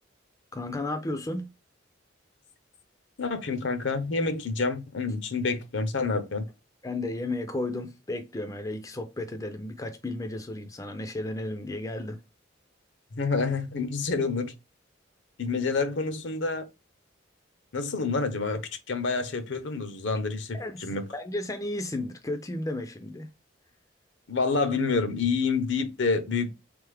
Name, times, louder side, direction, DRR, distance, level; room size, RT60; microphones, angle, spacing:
voice 1, 0.5-1.5 6.8-12.2 20.5-23.3, left 2 dB, 15° left, 0.4 m, -33 dB
voice 2, 3.2-6.4 13.2-14.5 15.4-16.7 17.7-21.1 24.3-26.5, left 4 dB, 70° left, 0.7 m, -28 dB
3.8 x 3.4 x 3.3 m
head